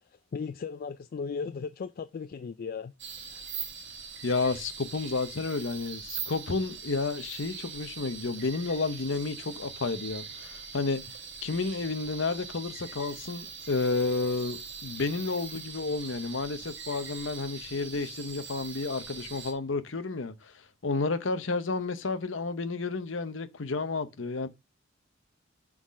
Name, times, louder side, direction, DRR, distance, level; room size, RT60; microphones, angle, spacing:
voice 1, 0.3-2.9 3.3-3.4, left 5 dB, 45° left, 0.3 m, -36 dB
sound 1, 3.0-19.5, right 6 dB, 60° right, 1.3 m, -42 dB
voice 2, 4.2-24.5, left 3 dB, 65° left, 0.8 m, -31 dB
6.1 x 4.0 x 6.1 m
head